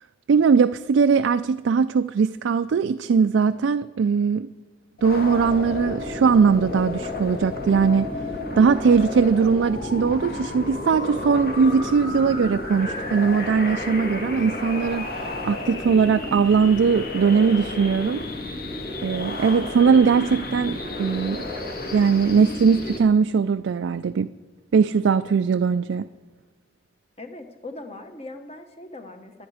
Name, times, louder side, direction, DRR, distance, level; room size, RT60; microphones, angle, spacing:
voice 1, 0.3-4.5 5.0-8.1 8.6-15.1 15.4-18.2 19.0-21.5 21.9-24.3 24.7-26.1, right 5 dB, 85° right, 10 dB, 0.4 m, -20 dB
sound 1, 5.0-23.0, left 2 dB, 50° left, 2.0 m, -31 dB
voice 2, 27.2-29.5, left 2 dB, 35° left, 6 dB, 1.3 m, -40 dB
22.5 x 8.9 x 4.9 m, 1.3 s
head